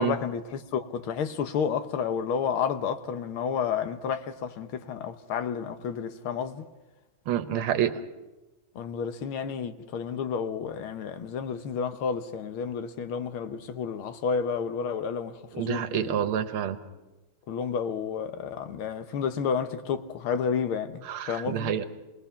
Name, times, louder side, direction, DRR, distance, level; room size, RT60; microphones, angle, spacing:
voice 1, 0.0-6.7 8.8-16.1 17.5-21.7, left 6 dB, 90° left, 1.9 m, -31 dB
voice 2, 7.3-7.9 15.6-16.8 21.0-21.8, right 10 dB, 90° right, 1.9 m, -28 dB
27.5 x 19.5 x 5.8 m
omnidirectional pair, 2.3 m